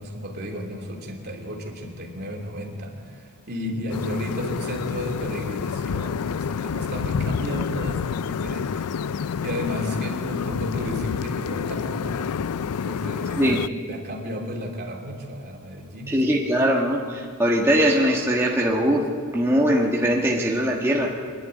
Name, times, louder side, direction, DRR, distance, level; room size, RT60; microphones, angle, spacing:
voice 1, 0.0-8.9 9.1-12.3 12.8-13.6 13.9-16.2, equal, 45° right, 0 dB, 3.0 m, -33 dB
sound 1, 3.9-13.7, left 6 dB, 90° left, 0.4 m, -28 dB
voice 2, 16.1-19.1 19.3-21.1, equal, 10° right, -3 dB, 1.6 m, -21 dB
24.5 x 11.0 x 9.7 m, 2.1 s
head